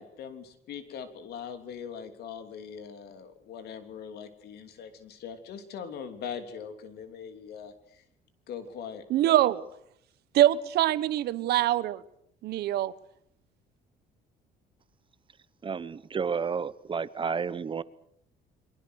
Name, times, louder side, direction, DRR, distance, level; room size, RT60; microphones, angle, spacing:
voice 1, 0.0-8.0 8.5-9.0, left 7 dB, 70° left, 8 dB, 3.2 m, -41 dB
voice 2, 9.1-9.6 10.3-12.0 12.4-12.9, right 13 dB, 75° right, 16 dB, 1.2 m, -24 dB
voice 3, 15.6-17.8, right 6 dB, 30° right, 17 dB, 0.9 m, -31 dB
29.5 x 23.0 x 6.5 m, 0.71 s
cardioid pair, 110°, 17 cm